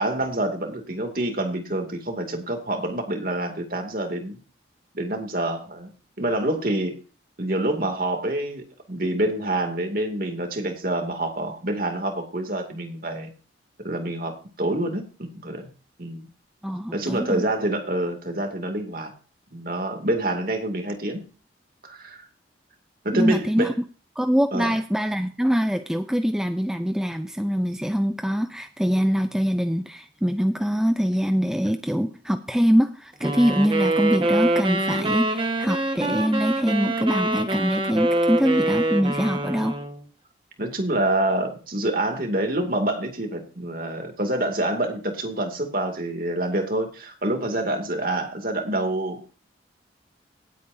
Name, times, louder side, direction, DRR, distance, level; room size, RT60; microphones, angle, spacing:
voice 1, 0.0-4.4 4.9-5.9 6.2-7.0 7.4-13.3 13.8-15.7 16.0-16.3 16.9-19.1 19.5-21.2 21.8-22.2 23.0-23.7 24.5-24.7 40.6-49.4, right 1 dB, 50° right, 4 dB, 2.5 m, -27 dB
voice 2, 16.6-17.4 23.1-23.7 24.2-39.8, equal, 5° right, 8 dB, 0.5 m, -23 dB
sound 1, 33.2-40.0, right 1 dB, 25° right, 1.4 m, -25 dB
18.0 x 8.4 x 2.7 m, 0.36 s
head